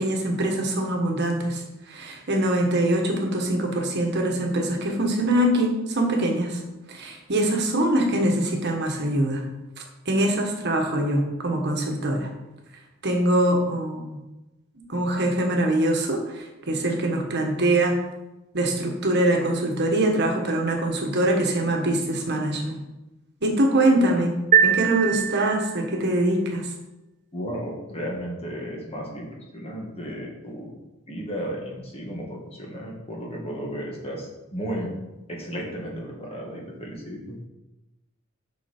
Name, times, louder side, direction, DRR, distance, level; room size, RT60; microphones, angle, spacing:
voice 1, 0.0-6.6 6.9-9.4 10.0-12.3 13.0-14.2 14.9-18.0 18.5-22.8 23.4-24.3 24.6-26.7, right 1 dB, 55° right, 2 dB, 1.4 m, -23 dB
sound 1, 24.5-26.0, right 8 dB, 40° right, 0.6 m, -22 dB
voice 2, 27.3-30.7 31.1-34.9 35.3-37.4, equal, 30° left, -2 dB, 1.9 m, -34 dB
8.2 x 5.8 x 4.4 m, 1.0 s
head